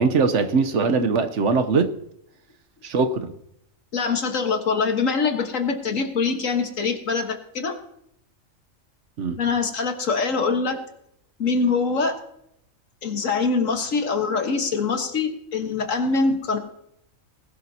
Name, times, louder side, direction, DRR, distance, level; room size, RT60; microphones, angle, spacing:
voice 1, 0.0-1.9 2.8-3.3 9.2-9.4, right 4 dB, 65° right, 8 dB, 1.2 m, -21 dB
voice 2, 3.9-7.8 9.4-10.8 11.4-12.2 13.0-16.6, left 4 dB, 70° left, 5 dB, 1.8 m, -24 dB
19.5 x 12.0 x 2.8 m, 0.77 s
omnidirectional pair, 1.4 m